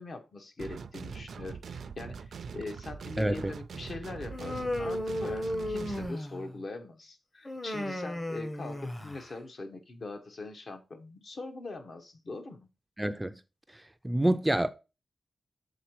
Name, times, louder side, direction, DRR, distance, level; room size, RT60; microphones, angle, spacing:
voice 1, 0.0-12.7, left 3 dB, 55° left, 1.1 m, -42 dB
sound 1, 0.6-6.1, right 6 dB, 80° right, 0.4 m, -42 dB
voice 2, 3.2-3.5 13.0-13.4 13.7-14.7, right 1 dB, 10° right, 0.3 m, -28 dB
Human voice, 4.3-6.6 7.5-9.3, left 1 dB, 20° left, 0.8 m, -34 dB
7.1 x 3.8 x 4.5 m
wide cardioid pair, 130°, 0 cm